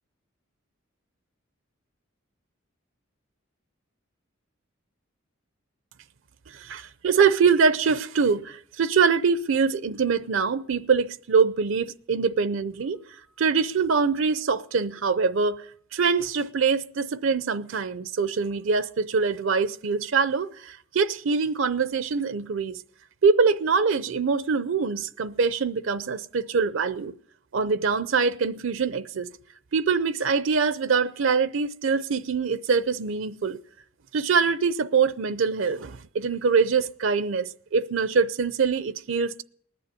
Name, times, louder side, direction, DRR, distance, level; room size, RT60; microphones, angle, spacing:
voice 1, 6.5-13.0 13.4-15.6 15.9-22.8 23.2-27.1 27.5-29.3 29.7-33.6 34.1-39.4, right 5 dB, 65° right, 0.5 m, -24 dB
19.5 x 7.0 x 9.5 m
head